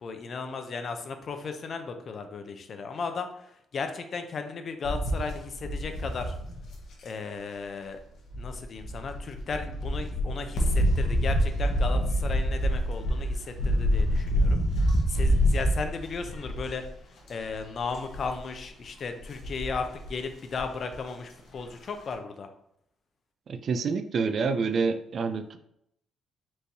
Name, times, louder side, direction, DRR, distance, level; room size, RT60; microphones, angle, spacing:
voice 1, 0.0-6.3 7.0-8.0 8.4-16.8 17.3-22.5, left 4 dB, 50° left, 7 dB, 0.5 m, -35 dB
sound 1, 4.8-7.1 8.3-16.9 17.3-17.6 17.9-18.4 19.2-20.1 20.6-20.7 20.9-21.0, equal, 70° left, 1.0 m, -26 dB
voice 2, 23.5-25.6, right 5 dB, 55° right, 9 dB, 0.4 m, -27 dB
4.4 x 3.2 x 2.7 m, 0.76 s
cardioid pair, 90°, 0 cm